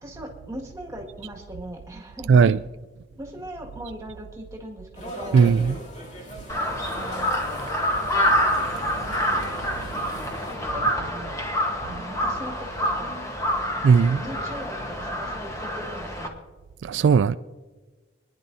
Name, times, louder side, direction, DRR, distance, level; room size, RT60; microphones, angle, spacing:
voice 1, 0.0-2.3 3.2-5.4 6.7-7.4 10.7-11.4 11.9-13.2 14.1-16.4, equal, 15° right, 1.9 m, -39 dB
voice 2, 2.3-2.6 5.3-5.8 13.8-14.2 16.8-17.4, right 6 dB, 75° right, 0.3 m, -17 dB
sound 1, 4.9-10.6, equal, 35° left, 2.4 m, -39 dB
Crow, 6.5-16.3, equal, 15° left, 1.2 m, -27 dB
27.0 x 10.5 x 2.7 m
head